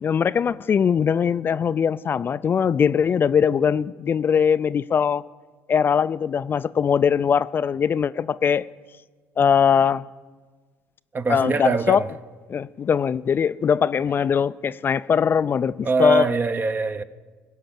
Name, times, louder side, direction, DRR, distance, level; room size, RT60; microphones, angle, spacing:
voice 1, 0.0-5.2 5.7-8.7 9.4-10.1 11.3-12.0 12.5-16.3, left 7 dB, 40° left, 0.3 m, -21 dB
voice 2, 11.1-12.0 15.8-17.0, right 4 dB, 35° right, 0.8 m, -23 dB
16.5 x 5.7 x 9.1 m
supercardioid pair, 70°, 6 cm